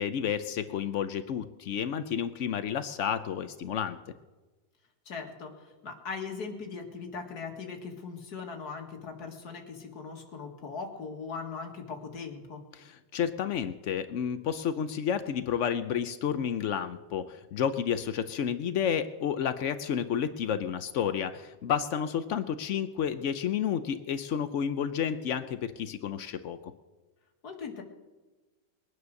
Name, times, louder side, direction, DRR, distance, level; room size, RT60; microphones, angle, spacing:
voice 1, 0.0-4.0 12.7-26.6, left 8 dB, 85° left, 10 dB, 0.6 m, -31 dB
voice 2, 5.1-12.6 27.4-27.8, left 5 dB, 55° left, 2 dB, 2.3 m, -40 dB
21.0 x 9.6 x 6.4 m, 1.2 s
omnidirectional pair, 2.0 m